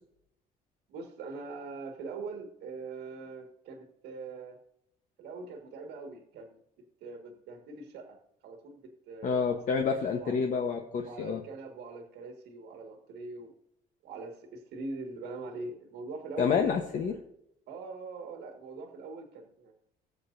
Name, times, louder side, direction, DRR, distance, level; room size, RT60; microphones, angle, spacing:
voice 1, 0.9-4.6 5.2-6.6 7.0-8.2 8.4-9.5 9.9-10.3 11.0-13.5 14.0-17.2 17.7-19.7, right 3 dB, 80° right, 3 dB, 1.7 m, -42 dB
voice 2, 9.2-11.4 16.4-17.1, left 6 dB, 50° left, 4 dB, 1.0 m, -28 dB
19.5 x 7.1 x 2.6 m, 0.79 s
cardioid pair, 110°, 17 cm